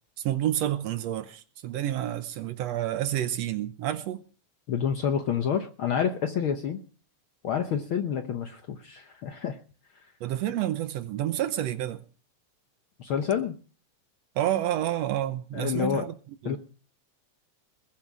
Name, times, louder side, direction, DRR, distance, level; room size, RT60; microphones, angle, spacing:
voice 1, 0.2-4.2 10.2-12.0 14.4-16.1 16.4-16.6, right 12 dB, 70° right, 1.8 m, -29 dB
voice 2, 4.7-6.8 7.4-9.6 13.0-13.6 15.5-16.1 16.4-16.6, left 8 dB, 65° left, 1.3 m, -28 dB
20.5 x 7.4 x 6.1 m
omnidirectional pair, 3.3 m